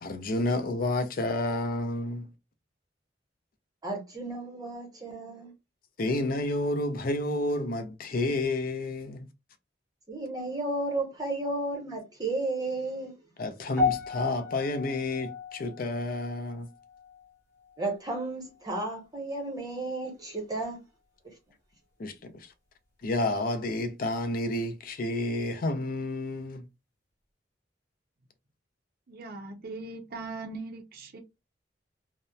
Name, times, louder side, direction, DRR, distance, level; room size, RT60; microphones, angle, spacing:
voice 1, 0.0-2.3 6.0-9.3 13.4-16.7 22.0-22.1 23.0-26.6, left 2 dB, 50° left, 0.5 m, -30 dB
voice 2, 3.8-5.5 10.1-13.2 17.8-20.8 21.2-21.3, right 2 dB, 20° right, 0.7 m, -33 dB
sound 1, 13.8-18.2 18.4-18.8 19.5-19.6, left 4 dB, 15° left, 1.1 m, -34 dB
voice 3, 29.1-31.2, right 3 dB, 55° right, 0.5 m, -40 dB
2.7 x 2.0 x 2.2 m
head